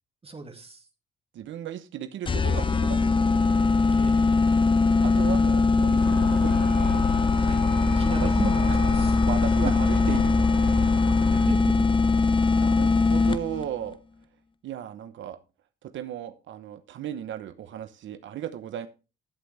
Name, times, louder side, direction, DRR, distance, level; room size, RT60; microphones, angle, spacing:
voice 1, 0.2-0.9 3.9-4.2 7.4-7.6 7.9-9.2 11.3-11.9, right 3 dB, 30° right, 5 dB, 2.2 m, -35 dB
voice 2, 1.3-3.1 5.0-6.7 8.1-8.8 9.1-10.3 10.6-10.8 12.5-14.0 14.6-15.4 15.8-18.9, right 10 dB, 75° right, 11 dB, 1.0 m, -36 dB
sound 1, 2.3-13.7, left 4 dB, 25° left, 0.8 m, -21 dB
sound 2, 6.0-11.5, left 2 dB, 40° left, 3.0 m, -33 dB
15.0 x 8.0 x 3.4 m, 0.31 s
cardioid pair, 90°, 20 cm